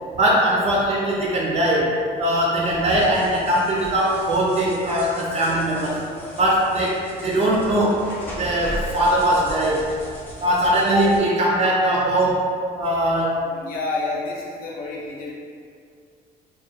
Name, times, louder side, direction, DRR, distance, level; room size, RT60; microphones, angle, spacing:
voice 1, 0.2-6.0 6.4-8.1 8.4-9.9 10.4-13.4, right 1 dB, 40° right, -4 dB, 0.4 m, -20 dB
sound 1, 2.6-11.2, right 1 dB, 10° left, 0.6 m, -38 dB
voice 2, 13.4-15.3, left 3 dB, 60° left, -4 dB, 0.5 m, -29 dB
2.4 x 2.1 x 2.7 m, 2.2 s
cardioid pair, 110°, 17 cm